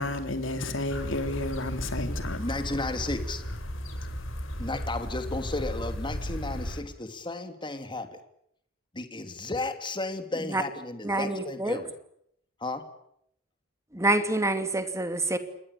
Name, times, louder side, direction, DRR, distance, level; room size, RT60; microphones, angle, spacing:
voice 1, 0.0-2.4, left 2 dB, 70° left, 3.5 m, -31 dB
sound 1, 0.9-6.8, equal, 90° left, 5.5 m, -35 dB
voice 2, 2.4-3.4 4.6-8.2 8.9-12.0 12.6-12.9, left 2 dB, 25° left, 3.0 m, -34 dB
voice 3, 11.0-11.8 13.9-15.4, right 2 dB, 15° right, 2.7 m, -26 dB
27.5 x 21.5 x 8.6 m
head